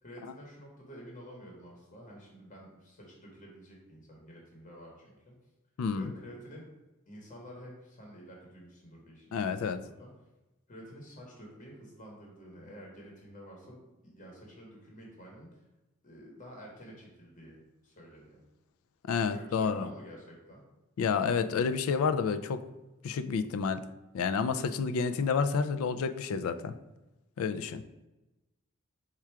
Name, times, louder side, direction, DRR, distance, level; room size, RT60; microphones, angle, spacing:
voice 1, 0.0-5.3 5.9-6.7 7.1-10.1 10.7-15.6 16.0-17.6 17.8-18.4 19.3-20.6, equal, 35° left, -2 dB, 1.0 m, -50 dB
voice 2, 5.8-6.1 9.3-9.8 19.1-19.9 21.0-22.6 23.0-23.8 24.1-26.7 27.4-27.8, left 5 dB, 70° left, 11 dB, 0.3 m, -29 dB
4.3 x 2.4 x 4.6 m, 1.0 s
head